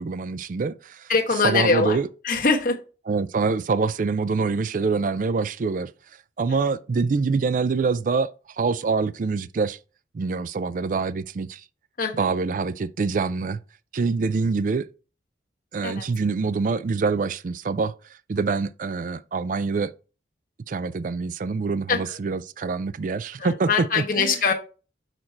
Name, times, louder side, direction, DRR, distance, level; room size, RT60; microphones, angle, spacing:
voice 1, 0.0-1.1 1.4-2.1 3.1-5.9 6.4-9.8 10.1-11.6 12.2-13.6 13.9-14.9 15.7-17.9 18.3-19.9 20.7-24.5, right 4 dB, 45° right, 0.3 m, -25 dB
voice 2, 1.1-2.0 2.2-2.8 6.5-6.7 12.0-12.3 15.8-16.1 21.9-22.2 23.4-24.5, left 4 dB, 50° left, 1.2 m, -23 dB
6.5 x 4.5 x 4.3 m
head